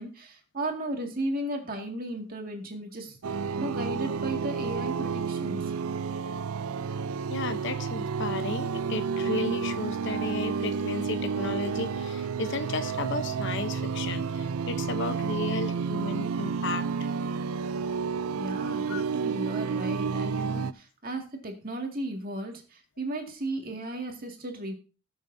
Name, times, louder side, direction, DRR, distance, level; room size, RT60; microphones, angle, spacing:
voice 1, 0.0-5.7 18.4-24.8, right 1 dB, 40° right, 2 dB, 2.1 m, -35 dB
sound 1, 3.2-20.7, right 5 dB, 80° right, 0.5 m, -30 dB
voice 2, 7.3-17.1 18.9-19.0, left 3 dB, 55° left, 10 dB, 0.8 m, -34 dB
19.5 x 7.1 x 2.7 m, 0.35 s
head